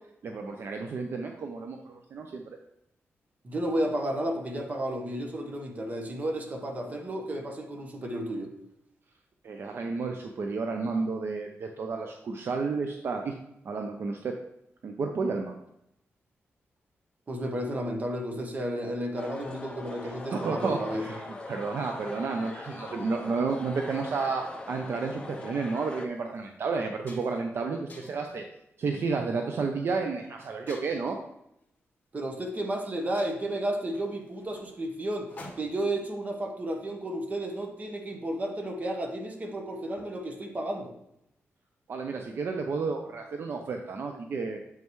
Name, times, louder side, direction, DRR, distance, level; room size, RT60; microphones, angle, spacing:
voice 1, 0.2-2.4 9.4-13.3 13.6-14.4 14.8-15.5 20.0-28.4 28.8-31.2 41.9-44.6, right 4 dB, 55° right, 3 dB, 0.6 m, -31 dB
voice 2, 3.4-8.5 17.3-21.0 32.1-35.3 35.6-40.9, right 1 dB, 30° right, 3 dB, 1.1 m, -32 dB
sound 1, 19.1-26.1, left 2 dB, 20° left, 0.7 m, -42 dB
sound 2, 25.6-25.8 26.3-26.5 26.8-27.5 27.9-28.3 29.0-29.3 30.7-31.2 32.3-32.4 32.7-32.8 33.1-35.9, left 2 dB, 35° left, 1.7 m, -49 dB
7.6 x 5.4 x 3.1 m, 0.80 s
wide cardioid pair, 125°, 5 cm